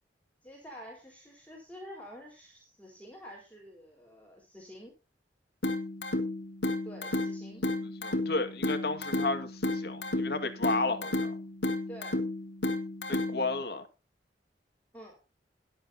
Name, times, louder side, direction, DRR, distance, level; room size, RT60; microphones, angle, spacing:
voice 1, 0.4-4.9 6.8-7.6 11.9-12.2 14.9-15.2, equal, 10° left, 4.0 m, -48 dB
sound 1, 5.6-13.6, left 2 dB, 80° left, 2.2 m, -33 dB
voice 2, 7.8-11.4 13.1-13.9, left 3 dB, 60° left, 2.0 m, -33 dB
22.0 x 7.7 x 2.8 m
head